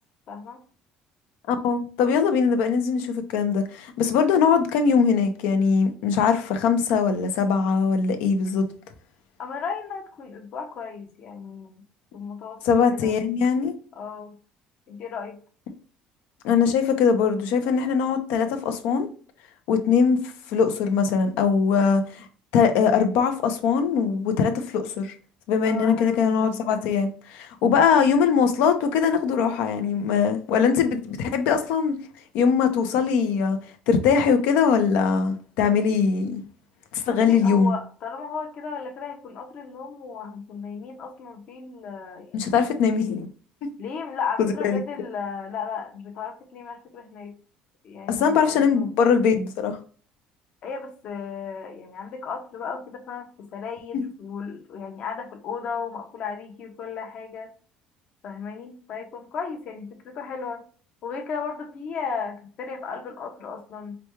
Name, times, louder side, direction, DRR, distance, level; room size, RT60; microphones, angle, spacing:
voice 1, 0.3-0.6 9.4-11.7 12.1-12.6 12.9-13.1 13.9-14.4 14.9-15.4 25.6-26.6 27.8-28.0 37.1-42.5 43.8-47.3 47.8-48.9 50.6-57.5 58.2-60.6 61.0-64.0, left 5 dB, 50° left, 0.9 m, -35 dB
voice 2, 1.5-8.6 12.6-13.7 16.4-19.1 19.7-22.3 22.5-25.1 25.5-31.9 32.3-33.6 33.9-36.4 36.9-37.7 42.3-43.3 43.6-43.7 44.6-44.8 48.1-49.8 53.9-54.0, left 6 dB, 80° left, 0.7 m, -21 dB
5.0 x 2.3 x 3.0 m
cardioid pair, 130°, 3 cm